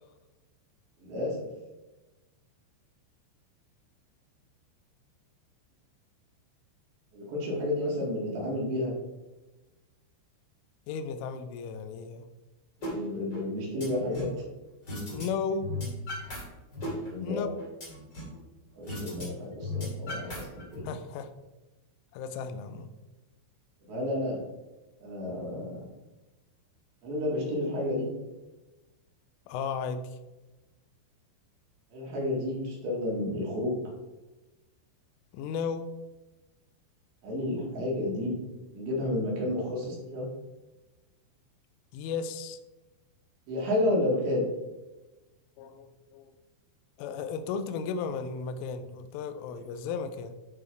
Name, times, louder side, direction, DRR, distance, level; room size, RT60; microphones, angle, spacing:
voice 1, 1.0-1.4 7.1-8.9 12.8-14.3 17.0-17.5 18.7-20.9 23.8-24.4 25.0-25.7 27.0-28.1 31.9-33.8 37.2-38.4 38.7-40.3 43.5-44.5, left 1 dB, 65° right, -5 dB, 4.1 m, -31 dB
voice 2, 10.9-12.3 15.1-15.7 17.2-17.5 20.8-21.3 22.1-22.9 29.5-30.0 35.3-35.9 41.9-42.6 45.6-46.3 47.0-50.4, left 5 dB, 85° left, 9 dB, 3.1 m, -34 dB
sound 1, 12.8-12.9 13.3-14.4 14.9-15.3 15.5-16.4 16.7-18.4 18.9-19.2 19.5-20.8, left 2 dB, 30° left, 2.2 m, -36 dB
11.0 x 4.1 x 4.5 m, 1.1 s
omnidirectional pair, 5.8 m